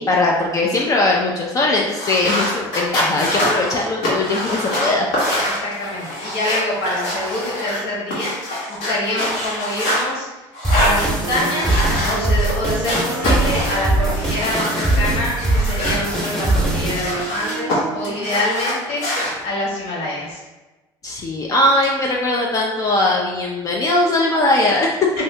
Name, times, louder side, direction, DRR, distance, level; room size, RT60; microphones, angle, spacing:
voice 1, 0.0-5.1 21.0-25.1, left 2 dB, 35° left, -1 dB, 0.4 m, -19 dB
sound 1, 1.9-10.0 10.5-12.5 12.8-15.0 15.3-17.8 18.0-19.3, left 1 dB, 90° left, 1.2 m, -25 dB
voice 2, 5.4-10.3 10.7-19.0 19.4-20.4, left 1 dB, 70° left, -5 dB, 1.5 m, -26 dB
sound 2, 10.6-17.0, right 2 dB, ahead, 0.9 m, -21 dB
sound 3, 10.7-18.3, right 5 dB, 75° right, 0.4 m, -32 dB
2.7 x 2.6 x 3.2 m, 1.1 s
supercardioid pair, 100°, 11 cm